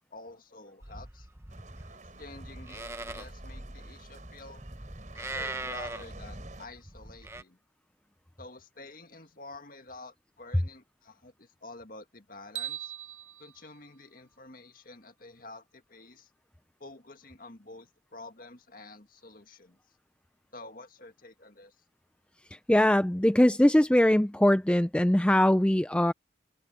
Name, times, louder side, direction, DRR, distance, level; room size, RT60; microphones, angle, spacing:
voice 1, 0.1-1.3 1.9-4.6 5.2-7.6 8.4-12.9 13.4-16.3 16.8-19.8 20.5-21.8, left 2 dB, 50° left, 2.0 m, -49 dB
Livestock farm animals working animals, 0.8-7.4, right 2 dB, 15° right, 0.9 m, -41 dB
sound 1, 1.5-6.7, right 3 dB, 40° right, 4.5 m, -52 dB
sound 2, 12.6-14.8, right 11 dB, 80° right, 3.0 m, -41 dB
voice 2, 22.5-26.1, left 1 dB, 5° left, 0.4 m, -22 dB
head